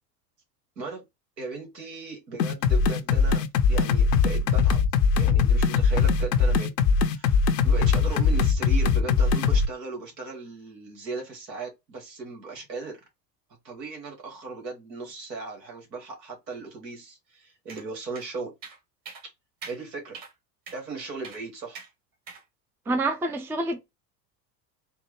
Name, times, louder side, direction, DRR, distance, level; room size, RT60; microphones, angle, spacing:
voice 1, 1.4-3.4 3.7-4.9 5.1-6.7 7.0-13.0 13.6-18.5 19.2-19.3 19.6-20.2 20.7-21.8, right 4 dB, 85° right, 1.8 m, -37 dB
sound 1, 2.4-9.7, left 5 dB, 80° left, 0.7 m, -21 dB
sound 2, 17.7-17.9 18.2-18.3 18.6-18.8 19.1-19.2 19.6-19.8 20.1-20.3 20.7-20.8 21.2-21.4 21.7-21.9 22.3-22.4, right 5 dB, 40° right, 1.5 m, -42 dB
voice 2, 22.9-23.8, right 2 dB, 5° right, 0.3 m, -27 dB
4.4 x 2.1 x 3.1 m
hypercardioid pair, 85°, 49 cm